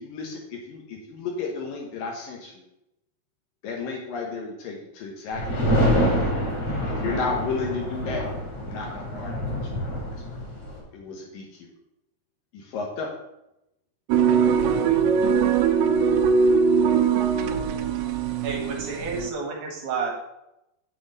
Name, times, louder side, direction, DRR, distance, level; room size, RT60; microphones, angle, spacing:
voice 1, 0.0-2.6 3.6-6.0 7.0-8.2 8.6-9.6 9.9-10.0 10.9-11.7 12.5-13.1, left 4 dB, 65° left, 0 dB, 2.5 m, -33 dB
sound 1, 5.3-10.8, equal, 35° left, 3.8 m, -26 dB
sound 2, 14.1-19.3, right 6 dB, 85° right, 2.6 m, -21 dB
voice 2, 14.4-14.9 15.2-16.1 17.6-18.4, left 5 dB, 85° left, 2 dB, 2.0 m, -50 dB
voice 3, 18.4-20.1, right 4 dB, 60° right, 0 dB, 2.4 m, -30 dB
8.5 x 7.7 x 4.0 m, 0.86 s
omnidirectional pair, 5.0 m